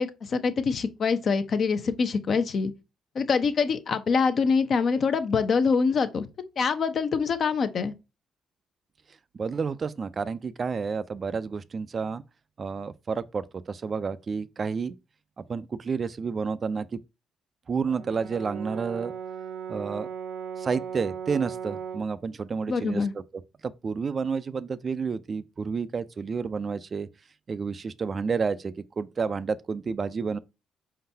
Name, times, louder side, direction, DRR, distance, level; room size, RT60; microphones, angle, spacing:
voice 1, 0.0-2.7 3.1-6.3 6.6-7.9 22.7-23.1, left 5 dB, 50° left, 0.7 m, -25 dB
voice 2, 9.3-12.2 12.6-15.0 15.5-17.0 17.7-19.1 19.7-20.1 20.6-23.1 23.3-27.1 27.5-30.4, right 5 dB, 40° right, 0.4 m, -30 dB
Brass instrument, 17.9-22.2, right 7 dB, 80° right, 0.8 m, -37 dB
4.5 x 3.8 x 2.7 m
cardioid pair, 90°, 0 cm